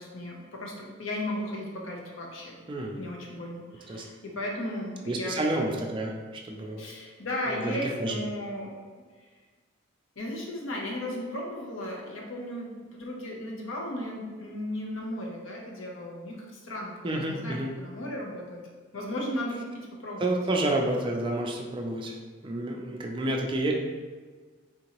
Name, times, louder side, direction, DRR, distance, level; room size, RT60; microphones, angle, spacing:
voice 1, 0.0-2.6 2.9-5.6 6.8-8.7 10.2-18.6 18.9-20.4, left 1 dB, 85° left, -1 dB, 0.7 m, -35 dB
voice 2, 2.7-3.0 3.9-4.0 5.1-6.1 6.4-6.9 7.5-8.2 17.0-17.7 20.2-22.1 22.4-23.7, right 1 dB, 25° right, 0 dB, 0.3 m, -29 dB
3.6 x 2.8 x 2.9 m, 1.5 s
head